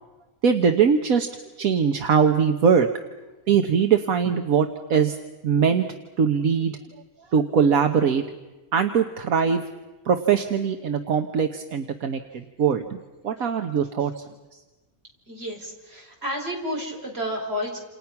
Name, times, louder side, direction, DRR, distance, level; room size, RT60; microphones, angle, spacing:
voice 1, 0.4-1.3 1.6-2.9 3.5-5.2 5.4-5.8 6.2-6.8 7.3-8.4 8.7-9.6 10.0-12.8 13.2-14.2 14.5-14.6, right 6 dB, 75° right, 5 dB, 1.6 m, -21 dB
voice 2, 15.3-17.8, equal, 45° right, 0 dB, 5.3 m, -31 dB
28.5 x 28.5 x 5.9 m, 1.2 s
omnidirectional pair, 1.5 m